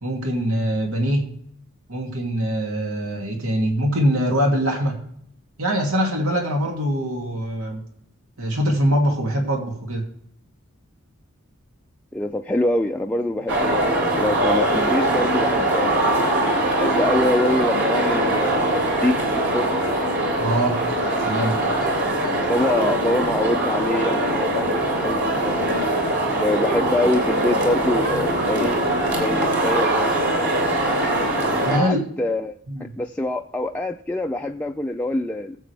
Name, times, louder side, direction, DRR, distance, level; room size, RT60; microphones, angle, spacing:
voice 1, 0.0-1.4 1.9-5.0 5.6-7.8 8.4-10.0 20.4-20.8 21.2-21.6 31.6-32.1 32.7-32.9, equal, 90° right, 1 dB, 2.6 m, -23 dB
voice 2, 12.1-16.1 16.7-19.7 21.3-21.6 22.5-25.6 26.2-28.8 29.1-30.3 31.7-32.5 33.0-35.6, left 1 dB, 5° left, 2 dB, 0.4 m, -25 dB
sound 1, 13.5-31.8, right 1 dB, 55° right, 3.2 m, -22 dB
19.5 x 7.6 x 3.4 m, 0.69 s
head